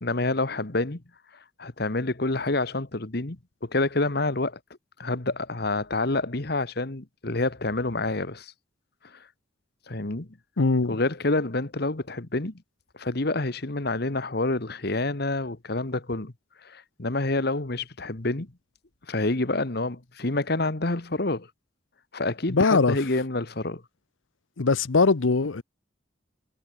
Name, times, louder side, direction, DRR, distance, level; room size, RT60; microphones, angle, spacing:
voice 1, 0.0-1.0 1.6-4.6 5.0-8.5 9.0-9.2 9.9-10.4 10.9-12.6 12.9-16.3 16.6-18.5 19.1-21.5 22.1-23.8, left 2 dB, 55° left, 1.4 m, -28 dB
voice 2, 10.6-11.0 22.5-23.0 24.6-25.6, left 4 dB, 85° left, 0.8 m, -21 dB
head